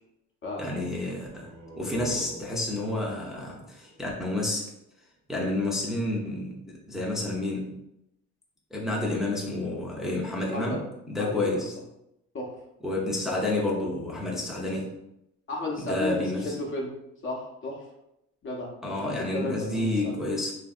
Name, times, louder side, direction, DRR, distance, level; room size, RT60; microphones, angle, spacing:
voice 1, 0.6-4.7 5.3-7.8 8.7-11.7 12.8-14.9 15.8-16.5 18.8-20.5, left 2 dB, ahead, -3 dB, 0.5 m, -30 dB
sound 1, 1.2-4.8, right 1 dB, 65° right, 0.7 m, -44 dB
voice 2, 11.1-11.6 12.3-12.5 15.5-16.9 17.2-17.8 18.4-20.2, left 2 dB, 40° left, 0 dB, 0.7 m, -34 dB
2.7 x 2.6 x 2.4 m, 0.84 s
cardioid pair, 90°, 30 cm